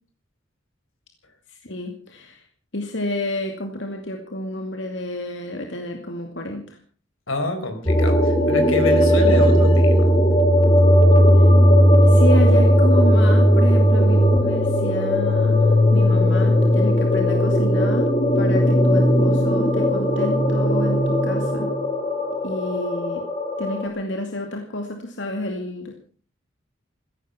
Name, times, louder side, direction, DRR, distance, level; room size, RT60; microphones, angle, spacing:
voice 1, 1.5-2.5 2.7-6.8 11.3-11.5 12.1-21.7 22.4-23.2 23.6-25.9, left 1 dB, 65° left, 4 dB, 2.4 m, -30 dB
voice 2, 7.3-10.4, left 2 dB, 90° left, 7 dB, 4.9 m, -26 dB
sound 1, 7.9-23.9, equal, 25° left, 2.5 m, -17 dB
16.0 x 15.5 x 5.8 m, 0.42 s
head